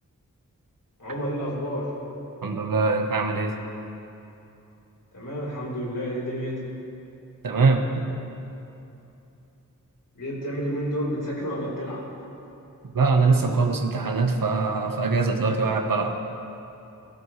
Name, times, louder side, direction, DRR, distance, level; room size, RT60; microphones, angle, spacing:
voice 1, 1.0-1.9 5.1-6.6 10.1-12.1, equal, 70° left, -5 dB, 3.8 m, -30 dB
voice 2, 2.4-3.5 7.4-8.1 12.9-16.1, right 4 dB, 85° right, 4 dB, 1.1 m, -22 dB
19.0 x 14.0 x 3.2 m, 2.8 s
wide cardioid pair, 65°, 33 cm